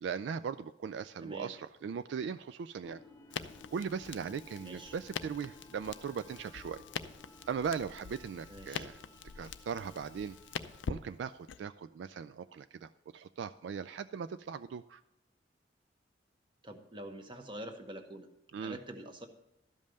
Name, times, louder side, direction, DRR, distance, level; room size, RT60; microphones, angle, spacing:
voice 1, 0.0-3.0 3.3-6.8 7.5-9.0 9.4-10.4 10.9-15.0 18.5-18.8, right 6 dB, 70° right, 11 dB, 0.3 m, -39 dB
voice 2, 1.2-1.6 4.6-5.0 8.5-8.9 16.6-18.3 18.6-19.3, right 1 dB, 25° right, 5 dB, 1.1 m, -45 dB
sound 1, 2.8-11.0, left 1 dB, 15° left, 0.8 m, -57 dB
Crackle, 3.3-11.6, left 6 dB, 80° left, 0.5 m, -44 dB
12.5 x 5.4 x 6.5 m, 0.86 s
head